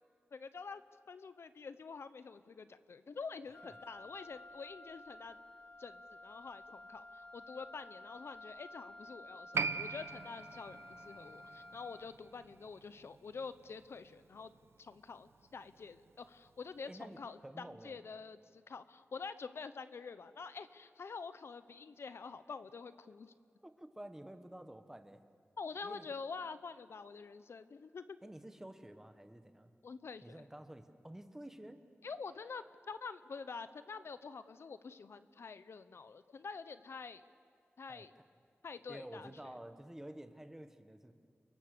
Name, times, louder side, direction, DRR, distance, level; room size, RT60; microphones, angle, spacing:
voice 1, 0.3-0.8 1.1-5.4 5.8-14.5 14.8-23.3 25.6-28.2 29.8-30.4 32.0-37.2 37.8-38.1 38.6-39.3, left 5 dB, 65° left, 12 dB, 0.8 m, -47 dB
Wind instrument woodwind instrument, 3.5-12.2, left 1 dB, 30° left, 1.4 m, -53 dB
Piano, 9.5-16.5 16.8-16.9, right 5 dB, 70° right, 0.7 m, -43 dB
voice 2, 16.8-18.0 23.6-25.2 25.8-26.1 28.2-29.7 30.2-31.8 37.9-38.2 38.9-41.1, right 1 dB, 10° right, 8 dB, 1.4 m, -51 dB
29.5 x 23.5 x 6.8 m, 2.3 s
wide cardioid pair, 120°, 5 cm